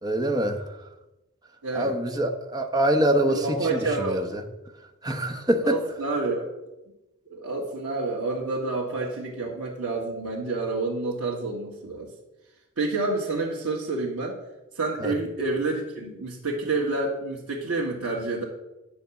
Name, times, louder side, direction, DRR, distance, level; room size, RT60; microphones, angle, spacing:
voice 1, 0.0-0.6 1.7-3.5 3.7-4.4 5.0-5.8 15.0-15.1, right 1 dB, 20° right, 4 dB, 0.9 m, -24 dB
voice 2, 1.6-2.0 3.2-4.2 5.6-6.5 7.3-12.1 12.8-14.4 14.7-18.4, right 3 dB, 90° right, -3 dB, 1.7 m, -28 dB
10.5 x 4.4 x 7.1 m, 0.98 s
head